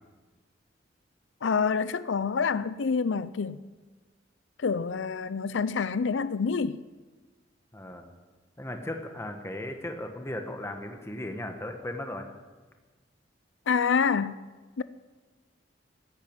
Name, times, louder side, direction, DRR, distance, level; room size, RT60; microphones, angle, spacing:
voice 1, 1.4-3.6 4.6-6.8 13.7-14.4 14.8-14.9, left 5 dB, 85° left, 0.5 m, -27 dB
voice 2, 7.7-8.1 8.6-12.3, left 1 dB, 15° left, 1.6 m, -36 dB
16.0 x 9.5 x 9.1 m
head